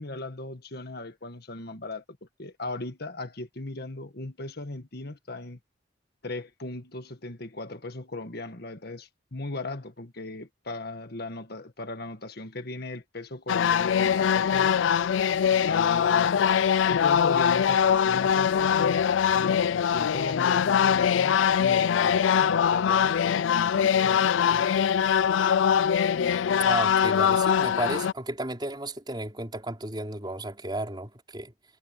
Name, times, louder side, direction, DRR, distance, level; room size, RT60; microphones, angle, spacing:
voice 1, 0.0-2.0 2.4-5.6 6.2-14.8 15.5-16.5 16.9-19.0 19.3-24.7, left 2 dB, 55° left, 1.7 m, -37 dB
sound 1, 13.5-28.1, left 8 dB, 85° left, 0.4 m, -22 dB
voice 2, 26.6-31.5, right 2 dB, 25° right, 4.6 m, -33 dB
head